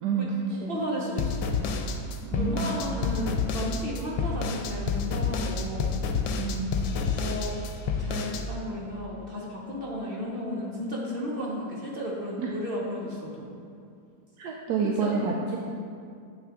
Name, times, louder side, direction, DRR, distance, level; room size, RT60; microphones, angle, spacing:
voice 1, 0.0-0.8 2.2-2.8 6.3-6.8 12.4-12.5 14.4-15.6, right 5 dB, 75° right, -1 dB, 1.1 m, -29 dB
voice 2, 0.5-2.1 2.3-6.1 7.1-7.5 8.0-13.5 15.0-15.3, equal, 40° right, -3 dB, 0.9 m, -34 dB
sound 1, 1.2-8.4, left 5 dB, 85° left, 1.2 m, -29 dB
8.2 x 5.8 x 3.6 m, 2.4 s
omnidirectional pair, 1.8 m